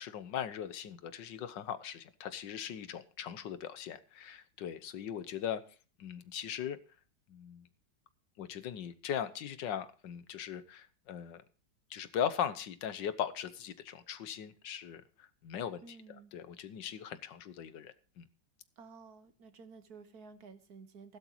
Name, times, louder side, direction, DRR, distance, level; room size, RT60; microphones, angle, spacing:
voice 1, 0.0-5.6 6.0-6.8 7.3-7.7 8.4-11.4 11.9-16.0 16.3-18.3, left 9 dB, 80° left, 13 dB, 1.6 m, -39 dB
voice 2, 15.8-16.3 18.8-21.2, right 4 dB, 60° right, 10 dB, 1.6 m, -53 dB
16.0 x 12.5 x 3.0 m, 0.38 s
omnidirectional pair, 1.9 m